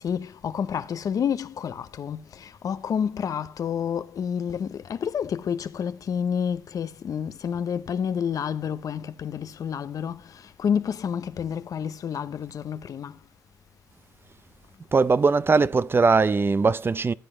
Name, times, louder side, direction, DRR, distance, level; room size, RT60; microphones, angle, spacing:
voice 1, 0.0-13.2, left 7 dB, 65° left, 0.8 m, -29 dB
voice 2, 14.9-17.1, right 4 dB, 35° right, 0.6 m, -20 dB
14.5 x 8.6 x 3.3 m
supercardioid pair, 60°, 7 cm